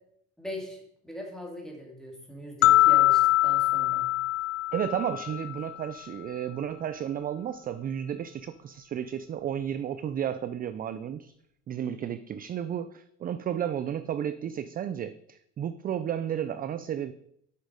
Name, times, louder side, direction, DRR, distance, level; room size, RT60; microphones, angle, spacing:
voice 1, 0.4-4.1, equal, ahead, -1 dB, 2.6 m, -40 dB
sound 1, 2.6-5.7, left 16 dB, 50° left, 0.5 m, -23 dB
voice 2, 4.7-11.3 11.7-17.1, right 9 dB, 30° right, 12 dB, 0.4 m, -32 dB
8.1 x 6.3 x 5.1 m, 0.71 s
cardioid pair, 115°, 32 cm